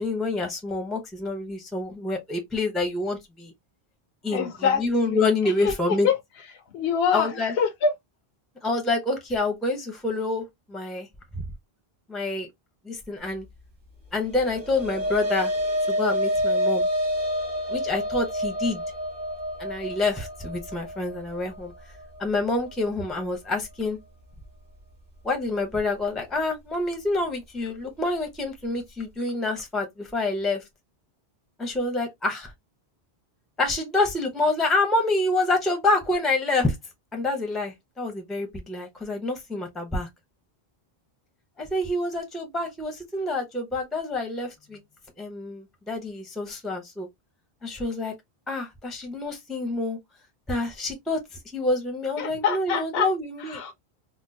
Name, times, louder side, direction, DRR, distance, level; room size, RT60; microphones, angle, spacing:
voice 1, 0.0-3.5 4.2-6.1 7.1-7.5 8.6-11.1 12.1-12.5 12.8-13.5 14.1-15.5 15.9-16.9 17.7-18.8 19.6-21.7 22.2-24.0 25.2-30.6 31.6-32.5 33.6-36.8 37.1-40.1 41.6-44.8 45.2-47.1 47.6-48.1 48.5-50.0 50.5-51.2 51.5-53.6, left 2 dB, ahead, 0.7 m, -27 dB
voice 2, 4.3-5.3 5.6-6.2 6.7-7.9 52.2-53.1 53.4-53.7, left 6 dB, 75° left, 0.8 m, -25 dB
sound 1, 14.3-22.9, equal, 55° right, 1.7 m, -28 dB
3.7 x 2.2 x 2.6 m
omnidirectional pair, 1.1 m